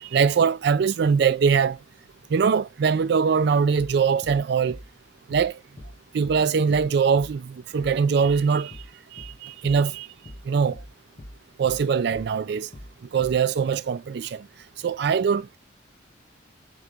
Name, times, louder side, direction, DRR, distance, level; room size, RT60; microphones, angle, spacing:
voice 1, 0.0-1.8 2.3-4.8 5.3-5.5 6.1-8.8 9.1-10.1 10.5-10.8 11.6-12.7 13.1-14.5 14.8-15.6, right 6 dB, 55° right, 0.3 m, -22 dB
sound 1, 3.8-4.0 4.2-4.4 4.7-4.9 5.3-5.5 5.8-6.0 6.2-6.4 6.7-6.9 7.2-7.4 7.8-8.0 8.2-8.4 8.7-8.9 9.2-9.4 9.6-9.8 10.3-10.5 10.7-10.9 11.2-11.4 11.6-11.8 12.1-12.3 12.7-12.9 13.2-13.4, left 1 dB, 25° left, 0.5 m, -42 dB
3.8 x 2.3 x 4.5 m
head